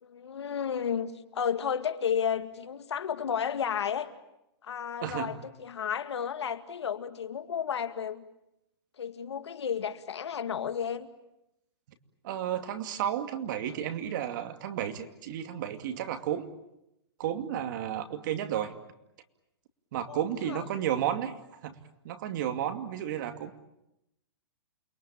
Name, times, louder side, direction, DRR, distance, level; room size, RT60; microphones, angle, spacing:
voice 1, 0.0-4.1 4.6-8.2 9.0-11.1 20.1-20.6, left 7 dB, 90° left, 9 dB, 2.2 m, -32 dB
voice 2, 12.2-16.5 17.2-18.7 19.9-21.8 22.0-23.7, right 10 dB, 45° right, 7 dB, 2.5 m, -32 dB
29.0 x 22.5 x 8.8 m, 0.87 s
hypercardioid pair, 160°, 14 cm